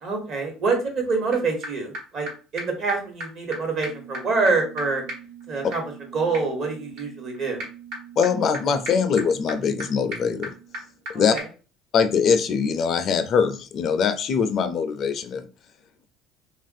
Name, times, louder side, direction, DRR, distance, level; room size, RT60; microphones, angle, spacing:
voice 1, 0.0-5.0 5.5-5.8 6.1-7.6 11.1-11.5, right 4 dB, 55° right, 2 dB, 1.2 m, -26 dB
sound 1, 1.3-1.4 1.6-1.7 1.9-2.0 2.3-2.4 2.6-2.7 2.9-3.0 3.2-3.3 3.5-3.6 3.8-11.1 11.4-11.5, right 2 dB, 75° right, 1.3 m, -38 dB
voice 2, 8.2-10.5 11.1-11.3 11.9-15.5, left 6 dB, 50° left, 10 dB, 0.4 m, -22 dB
2.9 x 2.4 x 2.6 m, 0.35 s
supercardioid pair, 90°, 0 cm